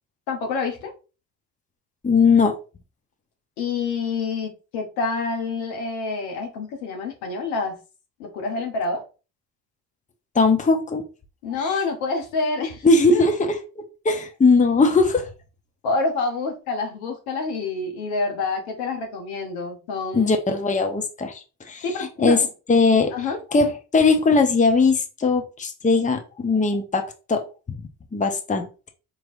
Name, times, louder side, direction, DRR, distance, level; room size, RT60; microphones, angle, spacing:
voice 1, 0.3-0.9 3.6-7.8 8.2-9.0 11.4-12.8 13.1-13.2 15.8-20.3 21.8-22.5 23.1-23.4, left 3 dB, 75° left, 3 dB, 1.1 m, -27 dB
voice 2, 2.0-2.6 10.3-11.0 11.6-11.7 12.8-13.5 13.8-15.3 20.1-22.4 22.7-23.1 23.5-23.7 23.9-27.0 27.3-27.4 28.1-28.7, left 4 dB, 15° left, 5 dB, 0.8 m, -19 dB
4.5 x 3.1 x 2.6 m, 0.33 s
hypercardioid pair, 50°, 49 cm